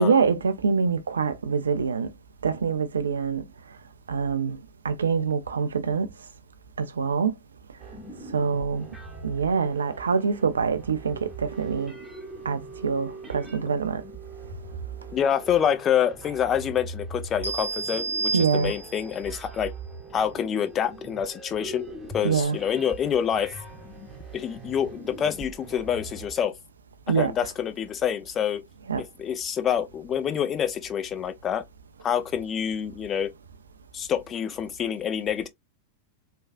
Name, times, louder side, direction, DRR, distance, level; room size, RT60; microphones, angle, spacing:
voice 1, 0.0-2.1 2.4-3.4 4.1-4.6 4.8-6.1 6.8-7.3 8.3-8.9 9.2-11.9 12.5-14.0 18.3-18.7 22.2-22.6 27.1-27.3 28.9-29.0, right 5 dB, 70° right, 0.4 m, -25 dB
sound 1, 7.8-26.3, right 3 dB, 10° right, 0.9 m, -42 dB
voice 2, 15.1-19.7 20.1-21.8 22.1-23.5 24.3-26.6 27.1-28.6 29.0-31.6 32.0-33.3 33.9-35.5, left 8 dB, 25° left, 0.5 m, -27 dB
sound 2, 17.4-19.2, right 3 dB, 90° right, 0.9 m, -30 dB
3.3 x 2.2 x 2.4 m
figure-of-eight pair, 90°, 0 cm